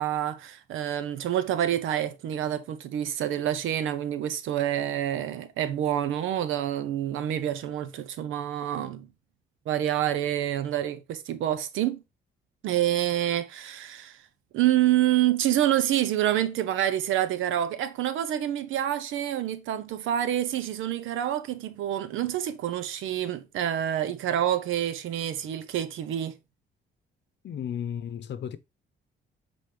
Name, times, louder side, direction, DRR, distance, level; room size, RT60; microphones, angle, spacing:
voice 1, 0.0-9.1 9.7-12.0 12.6-14.2 14.5-26.3, right 11 dB, 85° right, 0.9 m, -27 dB
voice 2, 27.4-28.6, left 8 dB, 65° left, 0.8 m, -34 dB
7.6 x 4.1 x 3.4 m
cardioid pair, 90°, 20 cm